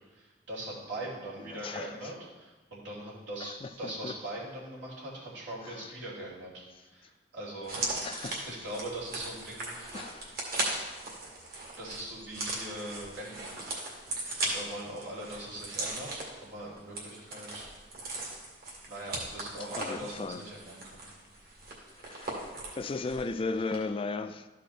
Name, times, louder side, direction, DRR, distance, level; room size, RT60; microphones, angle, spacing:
voice 1, 0.1-7.8 8.5-9.7 11.8-13.6 14.5-17.7 18.9-21.0, right 1 dB, 85° right, -6 dB, 3.0 m, -41 dB
voice 2, 1.4-2.1 3.4-4.2 5.6-5.9 8.0-8.5 9.9-10.4 19.8-20.4 22.0-24.5, left 3 dB, 30° left, 10 dB, 0.3 m, -36 dB
sound 1, 7.6-23.3 23.6-23.8, right 2 dB, 55° right, 2.0 m, -38 dB
13.0 x 4.9 x 4.3 m, 1.2 s
head